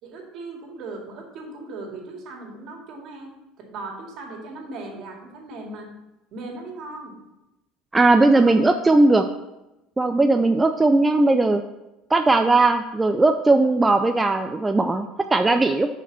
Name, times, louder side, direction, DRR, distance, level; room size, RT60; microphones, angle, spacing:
voice 1, 0.0-3.3 3.6-5.9 6.3-7.1 8.1-8.8, right 3 dB, 55° right, 1 dB, 2.2 m, -38 dB
voice 2, 7.9-9.2 10.0-11.6 12.1-15.9, right 2 dB, 15° right, 6 dB, 0.4 m, -18 dB
6.7 x 5.0 x 6.8 m, 0.97 s
cardioid pair, 125°, 0 cm